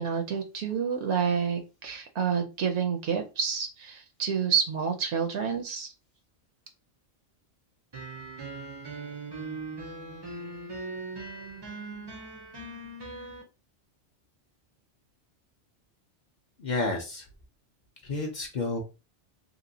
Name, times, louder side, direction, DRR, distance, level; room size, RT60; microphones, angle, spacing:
voice 1, 0.0-5.9, right 7 dB, 75° right, 4 dB, 0.8 m, -29 dB
sound 1, 7.9-13.4, right 3 dB, 35° right, 0.4 m, -40 dB
voice 2, 16.6-17.3 18.0-18.8, left 3 dB, 50° left, 1 dB, 0.6 m, -30 dB
2.9 x 2.6 x 2.6 m, 0.29 s
omnidirectional pair, 1.2 m